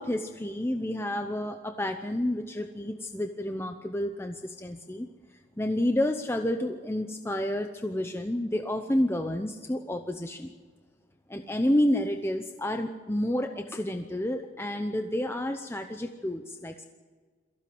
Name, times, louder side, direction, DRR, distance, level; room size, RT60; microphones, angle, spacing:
voice 1, 0.0-5.1 5.6-10.5 11.3-16.9, left 1 dB, 15° left, 6 dB, 0.8 m, -30 dB
23.0 x 15.5 x 7.9 m, 1.5 s
head